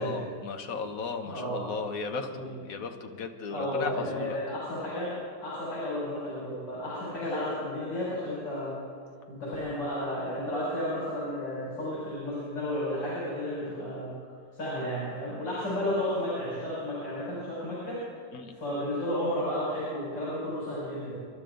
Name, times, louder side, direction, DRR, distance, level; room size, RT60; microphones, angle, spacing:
voice 1, 0.0-4.4 18.3-18.6, left 4 dB, 55° left, 5 dB, 1.4 m, -36 dB
voice 2, 1.3-1.6 2.3-2.5 3.5-5.1 5.4-8.7 9.3-14.1 14.5-18.0 18.5-21.1, left 1 dB, 85° left, -8 dB, 6.3 m, -32 dB
27.5 x 12.0 x 3.9 m, 2.2 s
omnidirectional pair, 1.9 m